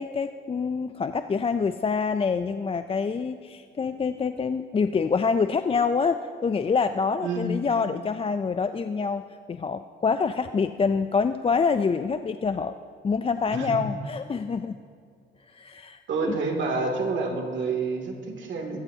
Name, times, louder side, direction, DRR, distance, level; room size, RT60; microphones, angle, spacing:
voice 1, 0.0-12.8 13.0-14.8 15.5-16.0 16.3-16.4, left 5 dB, 30° left, 10 dB, 0.4 m, -26 dB
voice 2, 16.1-18.8, right 4 dB, 75° right, 1 dB, 2.5 m, -28 dB
22.0 x 14.0 x 2.8 m, 2.2 s
cardioid pair, 80°, 20 cm